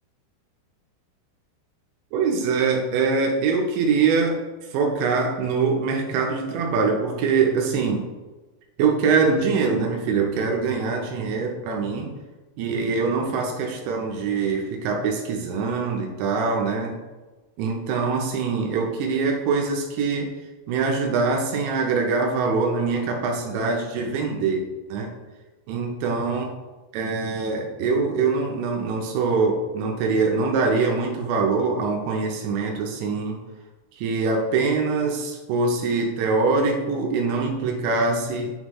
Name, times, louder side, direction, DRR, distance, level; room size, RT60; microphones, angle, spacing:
voice 1, 2.1-4.4 4.7-8.0 8.8-12.1 12.6-17.0 17.6-20.3 20.7-24.6 24.9-25.1 25.7-26.4 26.9-33.4 34.0-38.5, right 4 dB, 80° right, 1 dB, 2.9 m, -23 dB
9.6 x 3.9 x 3.0 m, 1.2 s
omnidirectional pair, 5.4 m